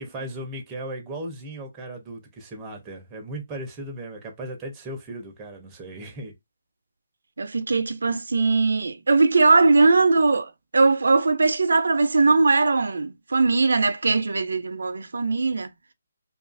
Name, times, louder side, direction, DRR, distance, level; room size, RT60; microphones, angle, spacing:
voice 1, 0.1-6.3, right 1 dB, 10° right, 0.5 m, -36 dB
voice 2, 7.4-15.7, right 3 dB, 85° right, 0.4 m, -20 dB
2.5 x 2.3 x 2.5 m
hypercardioid pair, 170°, 0 cm